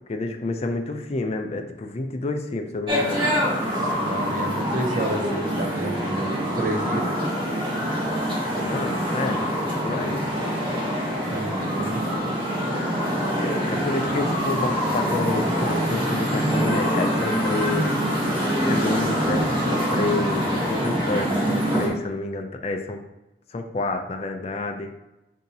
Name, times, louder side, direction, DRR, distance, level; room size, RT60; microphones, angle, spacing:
voice 1, 0.1-3.3 8.6-10.2 13.1-17.9 18.6-23.0 23.5-24.9, left 2 dB, 35° left, 5 dB, 0.4 m, -29 dB
sound 1, 2.9-21.9, equal, 30° right, 1.3 m, -25 dB
voice 2, 3.5-7.1 11.3-12.0, right 2 dB, 45° right, 3 dB, 0.6 m, -30 dB
6.9 x 2.7 x 2.7 m, 0.97 s
head